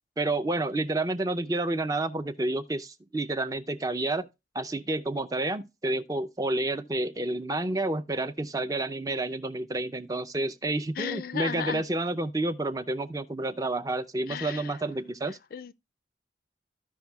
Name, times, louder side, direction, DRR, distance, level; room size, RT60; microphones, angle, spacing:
voice 1, 0.2-4.3 4.5-15.4, right 2 dB, 20° right, 0.4 m, -30 dB
voice 2, 11.0-11.8 14.3-14.7 15.5-15.7, left 7 dB, 55° left, 0.4 m, -34 dB
14.5 x 5.3 x 2.2 m
head